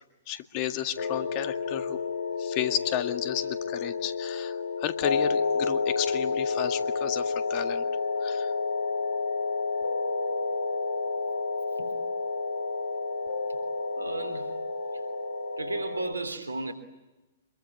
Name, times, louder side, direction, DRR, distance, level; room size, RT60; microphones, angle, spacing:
voice 1, 0.3-2.0 2.4-7.8 8.2-8.5, left 11 dB, 40° left, 9 dB, 1.9 m, -33 dB
sound 1, 1.0-16.1, left 4 dB, 65° left, 2.1 m, -30 dB
voice 2, 14.0-14.5 15.6-16.7, right 2 dB, 80° right, 10 dB, 3.3 m, -34 dB
26.0 x 22.5 x 9.8 m, 1.0 s
figure-of-eight pair, 110°, 0 cm